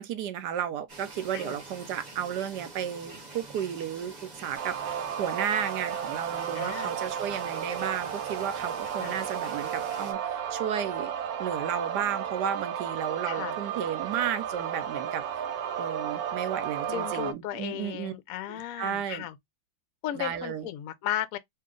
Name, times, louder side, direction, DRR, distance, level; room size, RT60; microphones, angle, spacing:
voice 1, 0.0-11.1 11.4-15.4 15.8-18.1 18.5-19.2 20.1-20.7, right 9 dB, 70° right, 1.1 m, -33 dB
sound 1, 0.9-10.1, right 2 dB, 35° right, 0.7 m, -46 dB
sound 2, 4.6-17.3, right 8 dB, 90° right, 1.4 m, -33 dB
voice 2, 6.5-6.9 9.0-9.1 13.2-13.6 16.9-19.4 20.0-21.4, left 12 dB, 70° left, 0.8 m, -35 dB
3.0 x 2.8 x 3.6 m
omnidirectional pair, 2.1 m